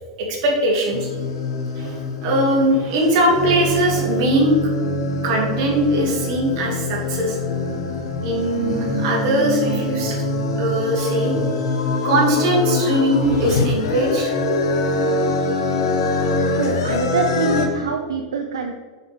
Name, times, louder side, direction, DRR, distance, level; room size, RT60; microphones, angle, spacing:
voice 1, 0.2-1.1 1.8-4.6 5.2-7.4 8.2-10.2 10.6-11.3 12.0-14.3, right 1 dB, 60° right, -1 dB, 2.0 m, -20 dB
sound 1, 0.9-17.7, left 2 dB, 70° left, 0.8 m, -24 dB
voice 2, 16.5-18.7, right 4 dB, 80° right, 4 dB, 0.5 m, -24 dB
6.9 x 5.2 x 3.3 m, 1.5 s
hypercardioid pair, 100°, 3 cm